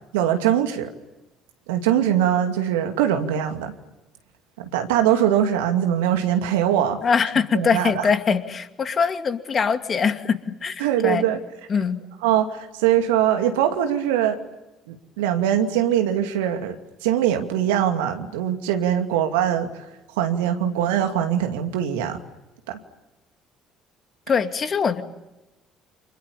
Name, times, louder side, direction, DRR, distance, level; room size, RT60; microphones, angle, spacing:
voice 1, 0.1-0.9 1.7-3.7 4.6-7.0 7.5-8.1 10.8-11.4 12.2-14.4 14.9-16.8 17.0-19.7 20.2-22.2 22.7-22.8, right 10 dB, 75° right, 6 dB, 2.4 m, -22 dB
voice 2, 7.0-11.2 11.7-12.0 24.3-25.0, left 6 dB, 40° left, 8 dB, 2.4 m, -22 dB
30.0 x 28.0 x 7.1 m, 1.0 s
figure-of-eight pair, 55°, 0 cm